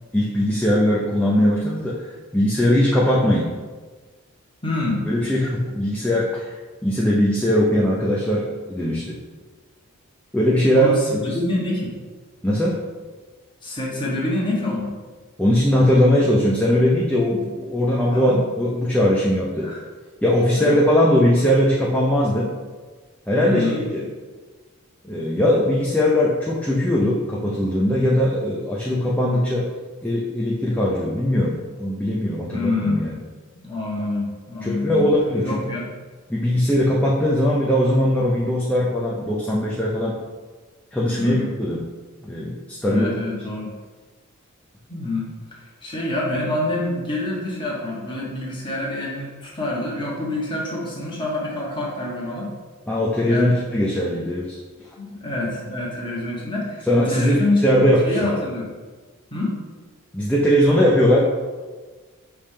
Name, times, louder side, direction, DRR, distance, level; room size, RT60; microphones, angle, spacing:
voice 1, 0.1-2.1 2.3-3.5 5.1-6.5 6.8-9.2 10.3-11.3 12.4-12.8 15.4-19.7 20.2-22.6 23.3-24.1 25.0-29.7 30.0-33.2 34.6-35.6 36.3-40.2 40.9-41.8 42.2-43.1 52.9-54.6 56.9-58.3 60.1-61.2, equal, 5° left, -5 dB, 0.6 m, -20 dB
voice 2, 4.6-5.0 10.7-11.9 13.6-14.9 18.1-18.4 19.6-19.8 20.6-20.9 23.4-23.8 32.5-33.0 33.5-35.1 35.4-35.9 41.1-41.5 42.9-43.7 44.9-52.5 53.2-53.6 55.0-56.8 57.1-57.6 58.0-58.7 59.3-59.6, left 2 dB, 20° left, -4 dB, 1.4 m, -26 dB
5.4 x 3.5 x 5.5 m, 1.4 s
head